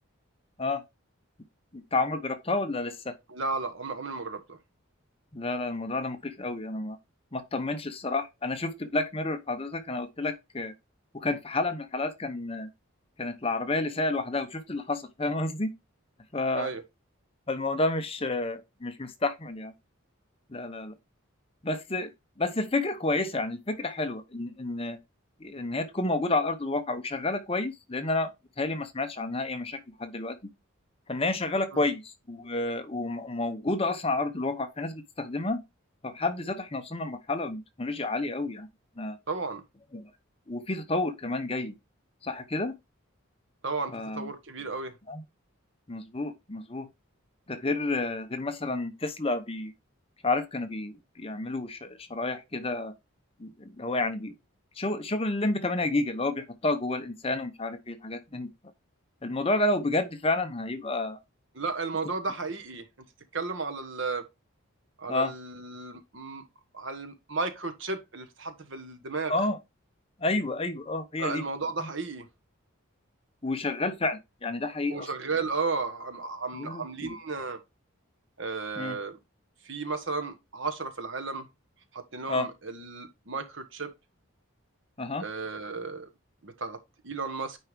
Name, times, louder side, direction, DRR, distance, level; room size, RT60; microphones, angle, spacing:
voice 1, 1.7-3.1 5.3-7.0 7.3-10.7 11.1-12.7 13.2-15.7 16.3-16.7 17.5-19.7 20.5-20.9 21.6-22.1 22.4-25.0 25.4-28.3 28.6-30.4 31.1-35.6 36.0-38.7 39.0-39.2 39.9-40.1 40.5-41.7 42.2-42.7 43.9-44.3 45.1-45.2 45.9-46.9 47.5-49.7 50.2-52.9 53.4-54.3 54.8-58.5 59.2-61.2 65.1-65.3 69.3-69.6 70.2-71.4 73.4-75.1 76.6-77.2 78.8-79.0 82.3-82.5 85.0-85.2, left 2 dB, 25° left, 0.8 m, -30 dB
voice 2, 3.3-4.6 16.5-16.8 31.7-31.9 39.3-39.6 43.6-44.9 61.5-62.9 63.3-64.2 65.0-66.4 66.7-69.3 71.2-72.3 74.9-77.6 78.4-79.2 79.6-81.5 81.9-83.9 85.2-86.1 86.4-87.6, right 4 dB, 60° right, 1.3 m, -34 dB
9.7 x 4.5 x 3.5 m
head